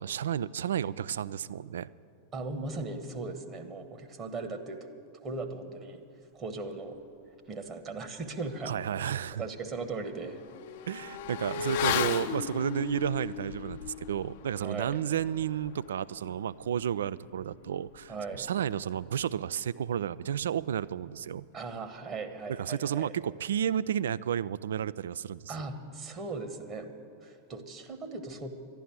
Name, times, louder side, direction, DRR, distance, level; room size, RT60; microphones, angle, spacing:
voice 1, 0.0-1.9 8.7-9.4 10.9-21.5 22.5-25.5, right 9 dB, 65° right, 17 dB, 0.3 m, -32 dB
voice 2, 2.3-4.8 5.2-6.0 6.3-7.0 7.5-8.7 9.3-10.4 14.6-15.0 18.1-18.5 21.5-23.1 25.5-26.9 27.2-28.5, right 3 dB, 30° right, 6 dB, 1.3 m, -38 dB
Motorcycle / Accelerating revving vroom, 8.7-8.8 9.2-19.2 19.5-19.6, left 8 dB, 50° left, 0.7 m, -37 dB
12.0 x 11.0 x 9.2 m, 2.4 s
figure-of-eight pair, 90°, 0 cm